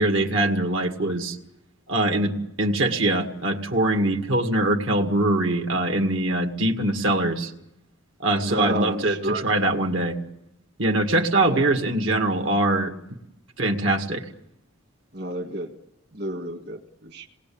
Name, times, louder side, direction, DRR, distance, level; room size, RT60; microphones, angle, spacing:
voice 1, 0.0-1.4 1.9-7.5 8.2-10.2 10.8-12.9 13.6-14.3, right 1 dB, 75° right, 3 dB, 2.1 m, -23 dB
voice 2, 8.4-9.5 11.4-11.7 15.1-15.7 16.1-17.3, right 1 dB, 50° right, 2 dB, 1.9 m, -30 dB
27.5 x 19.5 x 8.7 m, 0.87 s
head